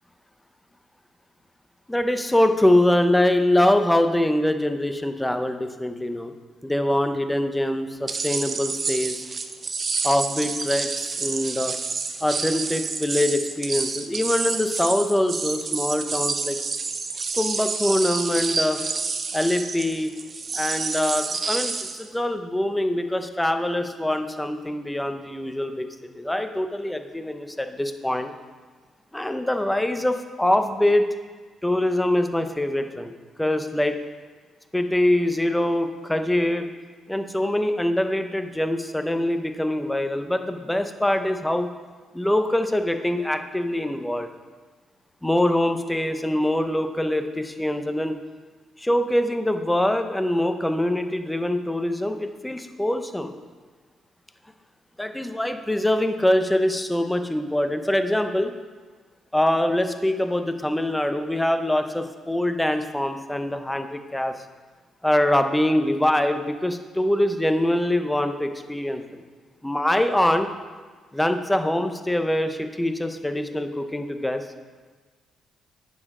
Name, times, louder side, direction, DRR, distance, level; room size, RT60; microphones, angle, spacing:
voice 1, 1.9-6.3 6.6-9.2 10.0-11.7 12.2-16.6 17.3-18.8 19.3-20.1 20.5-25.9 26.1-28.3 29.1-31.0 31.6-33.1 33.4-34.0 34.7-36.7 37.1-41.7 42.1-44.3 45.2-48.1 48.8-53.3 55.0-58.5 59.3-64.4 65.0-69.2 69.6-70.5 71.1-74.4, left 1 dB, 10° left, 7 dB, 0.7 m, -24 dB
sound 1, 8.1-22.1, right 4 dB, 40° right, 0.6 m, -29 dB
9.5 x 6.5 x 3.7 m, 1.4 s
cardioid pair, 90°, 0 cm